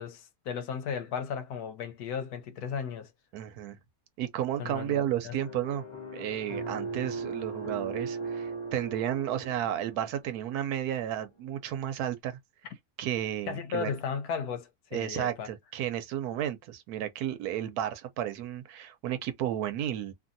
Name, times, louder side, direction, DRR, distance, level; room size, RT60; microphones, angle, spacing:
voice 1, 0.0-3.1 4.6-5.3 13.5-15.5, left 7 dB, 85° left, 1.2 m, -35 dB
voice 2, 3.3-3.8 4.2-5.8 6.1-12.4 13.0-13.9 14.9-20.1, right 11 dB, 85° right, 1.1 m, -32 dB
sound 1, 5.3-10.5, right 3 dB, 30° left, 0.5 m, -38 dB
2.7 x 2.6 x 2.6 m
omnidirectional pair, 1.6 m